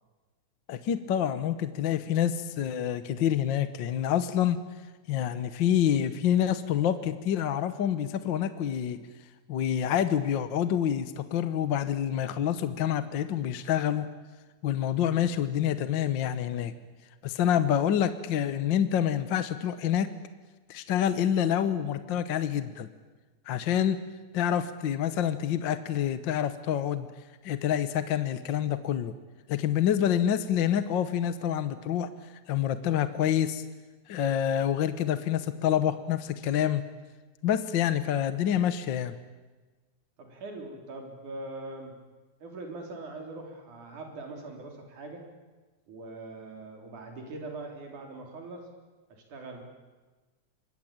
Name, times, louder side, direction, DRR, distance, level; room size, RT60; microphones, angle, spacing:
voice 1, 0.7-4.6 5.1-9.0 9.5-14.1 14.6-16.7 17.2-20.1 20.7-22.9 23.5-24.0 24.3-27.1 27.4-29.1 29.5-32.1 32.5-33.6 34.1-36.8 37.4-39.1, left 10 dB, 60° left, 11 dB, 1.2 m, -27 dB
voice 2, 40.2-42.0 42.4-45.2 45.9-48.7 49.1-49.6, right 2 dB, 85° right, 2 dB, 5.0 m, -42 dB
25.5 x 21.5 x 8.8 m, 1.3 s
omnidirectional pair, 3.4 m